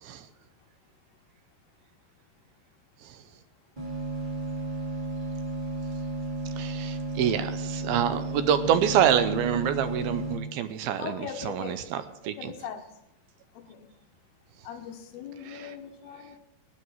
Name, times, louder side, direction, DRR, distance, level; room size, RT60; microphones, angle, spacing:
sound 1, 3.8-10.3, right 2 dB, 15° right, 2.7 m, -33 dB
voice 1, 6.6-12.5 15.4-15.8, right 9 dB, 80° right, 11 dB, 2.4 m, -27 dB
voice 2, 11.0-11.8 12.4-12.8 13.5-13.9 14.6-16.4, left 7 dB, 80° left, 5 dB, 3.0 m, -40 dB
18.5 x 9.7 x 4.6 m, 0.83 s
omnidirectional pair, 4.7 m